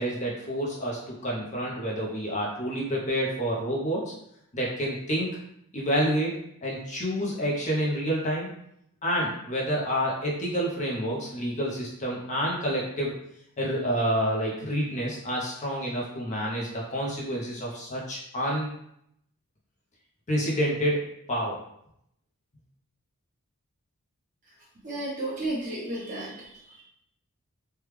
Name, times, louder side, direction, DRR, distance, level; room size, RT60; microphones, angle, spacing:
voice 1, 0.0-4.0 4.5-5.3 5.7-8.5 9.0-13.2 13.6-18.7 20.3-21.0 21.3-21.6, equal, 30° left, -4 dB, 0.6 m, -28 dB
voice 2, 24.8-26.8, right 1 dB, 35° right, -6 dB, 1.1 m, -33 dB
3.3 x 2.2 x 3.1 m, 0.75 s
head